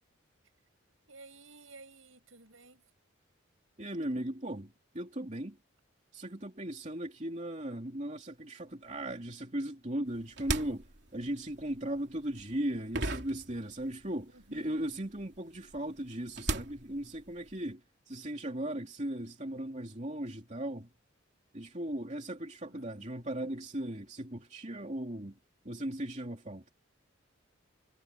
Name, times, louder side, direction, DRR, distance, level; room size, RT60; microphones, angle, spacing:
voice 1, 1.1-2.8 14.3-14.8 22.6-23.0, right 3 dB, 70° right, 7.6 m, -54 dB
voice 2, 3.8-5.6 6.1-10.9 11.1-20.9 21.5-25.4 25.6-26.7, right 1 dB, 35° right, 3.0 m, -37 dB
sound 1, 10.1-14.2 14.4-17.7, right 2 dB, 55° right, 3.4 m, -38 dB
head